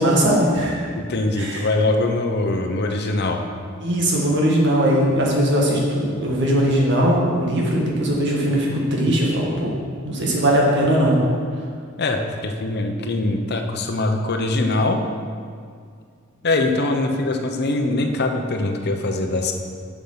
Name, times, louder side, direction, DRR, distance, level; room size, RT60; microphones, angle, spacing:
voice 1, 0.0-0.8 1.4-1.6 3.8-9.7 10.0-11.2, equal, 60° right, -3 dB, 1.9 m, -19 dB
voice 2, 0.9-3.4 12.0-15.0 16.4-19.5, left 2 dB, 50° left, 4 dB, 0.9 m, -22 dB
7.4 x 7.3 x 5.7 m, 2.1 s
head